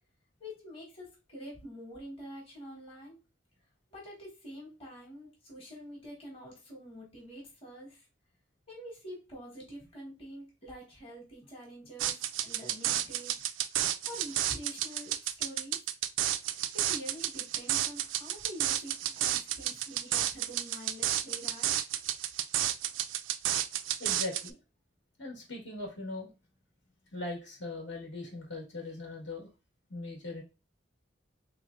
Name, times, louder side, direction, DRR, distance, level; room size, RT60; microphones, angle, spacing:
voice 1, 0.4-3.2 3.9-8.0 8.7-13.3 13.8-15.8 16.4-21.7, equal, 30° left, -3 dB, 1.3 m, -46 dB
sound 1, 12.0-24.5, right 12 dB, 85° right, 0.3 m, -31 dB
voice 2, 24.0-24.6 25.2-26.3 27.1-29.5 29.9-30.4, left 2 dB, 75° left, -1 dB, 1.5 m, -40 dB
3.5 x 3.1 x 2.4 m, 0.28 s
head